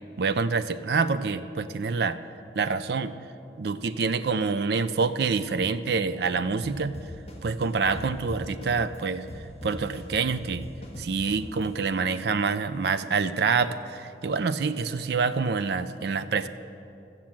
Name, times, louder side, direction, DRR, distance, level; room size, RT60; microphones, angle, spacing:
voice 1, 0.2-2.2 2.6-3.1 3.6-6.9 7.4-9.3 9.6-10.7 11.0-16.5, right 4 dB, 60° right, 11 dB, 0.4 m, -26 dB
sound 1, 6.6-9.0 9.3-11.6, left 1 dB, 30° left, 1.7 m, -40 dB
13.5 x 7.3 x 7.5 m, 2.7 s
head